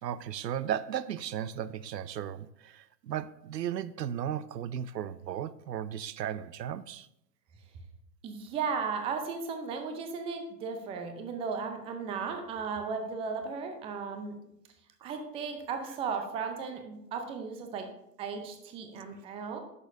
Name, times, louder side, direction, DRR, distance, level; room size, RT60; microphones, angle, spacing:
voice 1, 0.0-7.1, right 10 dB, 80° right, 0.6 m, -35 dB
voice 2, 8.2-14.3 15.0-17.9 18.2-19.6, right 5 dB, 10° right, 0.5 m, -35 dB
10.0 x 6.8 x 2.6 m
hypercardioid pair, 115°, 49 cm